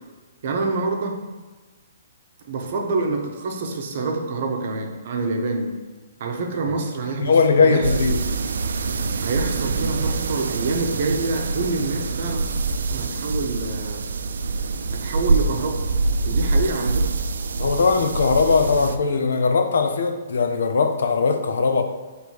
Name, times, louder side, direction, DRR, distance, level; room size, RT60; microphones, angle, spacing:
voice 1, 0.4-1.3 2.5-5.7 6.2-7.9 9.2-12.4 12.9-14.1 14.9-15.9 16.2-17.2, right 3 dB, 45° right, 2 dB, 0.9 m, -26 dB
voice 2, 7.2-8.2 17.6-21.8, left 4 dB, 80° left, 6 dB, 0.7 m, -19 dB
sound 1, 7.8-19.0, right 3 dB, 80° right, 0.4 m, -25 dB
7.0 x 3.3 x 4.6 m, 1.3 s
hypercardioid pair, 170°, 0 cm